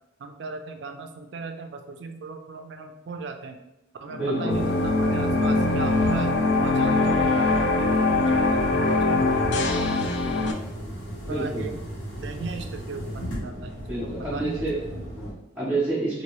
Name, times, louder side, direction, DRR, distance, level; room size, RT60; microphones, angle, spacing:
voice 1, 0.2-3.6 4.0-6.3 6.6-9.2 11.3-11.7 12.2-15.1, right 4 dB, 60° right, 6 dB, 0.4 m, -37 dB
sound 1, 4.1-10.5, left 3 dB, 60° left, 0.4 m, -22 dB
voice 2, 4.2-4.6 11.3-11.7 13.9-14.8 15.2-16.2, right 2 dB, 5° right, -11 dB, 0.8 m, -28 dB
sound 2, 4.5-15.3, right 1 dB, 80° left, 1.0 m, -35 dB
2.9 x 2.6 x 3.0 m, 0.91 s
head